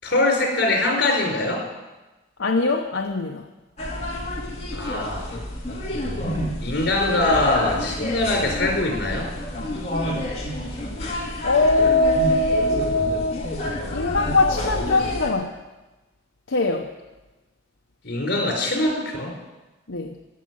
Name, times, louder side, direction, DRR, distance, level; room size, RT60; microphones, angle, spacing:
voice 1, 0.0-1.7 4.7-5.4 6.6-9.3 18.0-19.3, left 2 dB, 60° left, 0 dB, 4.8 m, -23 dB
voice 2, 2.4-3.5 11.4-13.5 13.9-15.6 16.5-16.9 19.9-20.2, left 2 dB, 80° left, 2 dB, 0.9 m, -21 dB
sound 1, 3.8-15.3, left 1 dB, 35° left, 2.4 m, -29 dB
16.0 x 6.6 x 9.5 m, 1.1 s
head